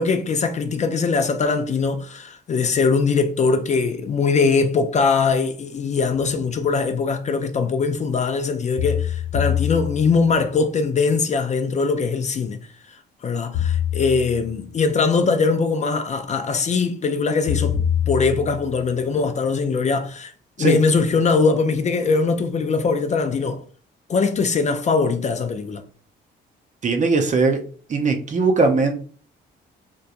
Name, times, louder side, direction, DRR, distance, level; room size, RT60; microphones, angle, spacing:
voice 1, 0.0-12.7 13.2-17.8 18.1-20.3 20.6-23.6 24.1-25.8, left 4 dB, 35° left, 0.4 m, -21 dB
sound 1, 8.8-10.4 13.5-14.6 17.5-18.8, left 9 dB, 65° left, 0.9 m, -24 dB
voice 2, 26.8-27.6 27.9-28.9, right 3 dB, 40° right, 0.6 m, -19 dB
2.9 x 2.2 x 2.4 m
cardioid pair, 90°, 20 cm